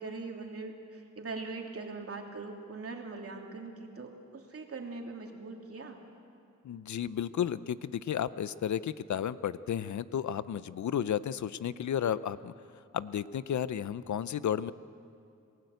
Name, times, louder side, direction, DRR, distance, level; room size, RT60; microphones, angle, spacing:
voice 1, 0.0-6.0, right 3 dB, 50° right, 1 dB, 3.1 m, -41 dB
voice 2, 6.6-12.5 12.9-14.7, left 9 dB, 70° left, 16 dB, 0.6 m, -33 dB
28.0 x 18.0 x 8.0 m, 2.6 s
wide cardioid pair, 110°, 31 cm